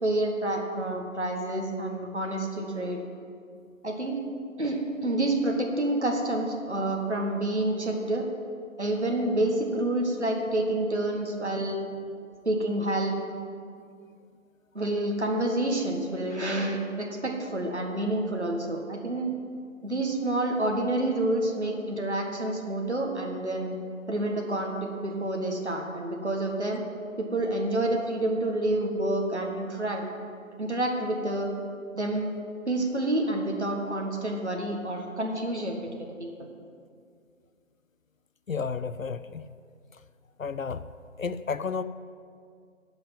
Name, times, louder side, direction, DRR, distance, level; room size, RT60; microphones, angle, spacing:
voice 1, 0.0-3.0 3.8-4.2 4.6-8.3 8.8-11.8 12.4-13.2 14.7-19.3 19.8-23.7 24.1-26.8 27.2-30.1 30.6-31.5 31.9-32.3 32.7-36.3, right 1 dB, 55° right, 1 dB, 1.5 m, -28 dB
voice 2, 38.5-39.5 40.4-40.8 41.2-41.8, left 5 dB, 75° left, 13 dB, 0.5 m, -32 dB
10.5 x 6.0 x 7.4 m, 2.2 s
figure-of-eight pair, 175°, 41 cm